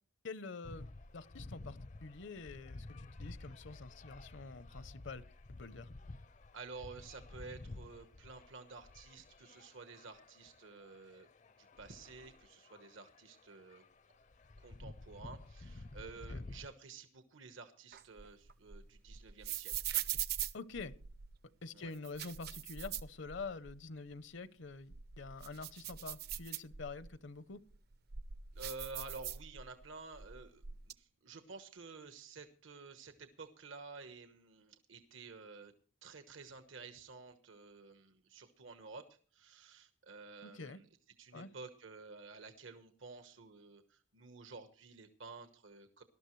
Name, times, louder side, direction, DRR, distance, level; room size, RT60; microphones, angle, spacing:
voice 1, 0.2-5.2 5.6-5.9 16.3-16.4 20.5-20.9 21.6-27.6 40.4-40.8 41.3-41.5, left 4 dB, 65° left, 15 dB, 0.8 m, -47 dB
sound 1, 0.6-16.7, left 2 dB, 40° left, 0.5 m, -52 dB
voice 2, 6.5-11.3 11.6-13.8 14.6-19.7 21.7-21.9 28.5-35.7 36.0-40.8 41.2-46.0, right 4 dB, 80° right, 8 dB, 1.2 m, -52 dB
sound 2, 17.9-21.4 21.9-23.8 24.1-24.2 24.7-27.1 27.7-29.9 30.1-30.9, right 10 dB, 50° right, 0.6 m, -42 dB
19.5 x 12.5 x 3.2 m, 0.41 s
head